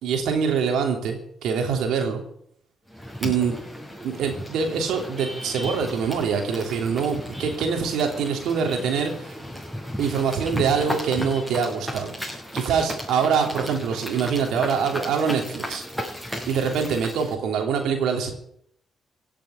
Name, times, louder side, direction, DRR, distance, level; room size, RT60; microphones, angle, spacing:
voice 1, 0.0-2.2 3.2-3.5 4.0-9.4 10.0-15.8 16.4-18.3, right 6 dB, 75° right, 3 dB, 3.2 m, -24 dB
sound 1, 2.9-17.3, equal, ahead, 6.8 m, -35 dB
16.5 x 7.6 x 9.7 m, 0.69 s
supercardioid pair, 50°, 0 cm